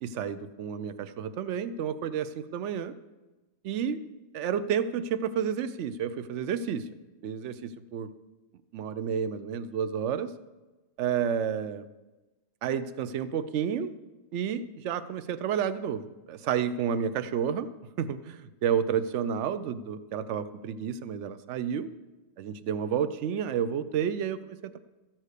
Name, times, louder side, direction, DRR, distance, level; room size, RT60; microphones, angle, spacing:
voice 1, 0.0-2.9 3.6-4.0 4.3-6.9 7.2-8.1 8.7-10.3 11.0-11.9 12.6-13.9 14.3-17.7 18.0-21.9 22.4-24.8, right 8 dB, 60° right, 14 dB, 0.8 m, -30 dB
14.0 x 7.4 x 6.6 m, 1.1 s
omnidirectional pair, 1.7 m